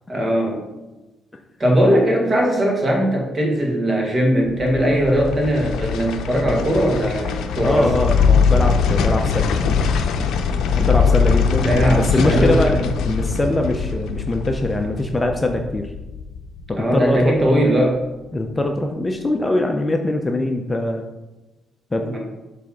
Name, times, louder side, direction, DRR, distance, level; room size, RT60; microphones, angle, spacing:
voice 1, 0.1-0.6 1.6-7.9 11.6-12.8 16.8-18.0 22.0-22.2, equal, 30° right, 0 dB, 1.9 m, -19 dB
sound 1, 4.4-17.6 18.0-18.1, left 5 dB, 80° left, 0.6 m, -21 dB
voice 2, 7.6-9.7 10.7-15.9 16.7-17.4 18.3-21.0 21.9-22.2, left 1 dB, 20° left, 3 dB, 0.6 m, -22 dB
7.1 x 3.4 x 5.0 m, 1.1 s
cardioid pair, 90°, 0 cm